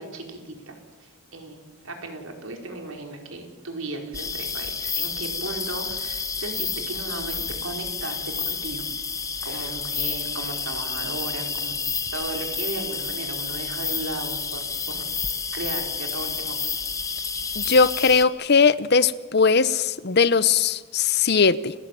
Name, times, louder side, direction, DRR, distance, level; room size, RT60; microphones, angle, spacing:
voice 1, 0.0-1.6 1.8-8.8 9.4-11.8 12.1-15.1 15.5-16.6, right 2 dB, 75° right, 4.9 m, -36 dB
sound 1, 4.1-18.2, left 5 dB, 15° left, 1.3 m, -30 dB
voice 2, 17.6-21.7, left 5 dB, 50° left, 0.8 m, -19 dB
30.0 x 18.5 x 9.2 m
head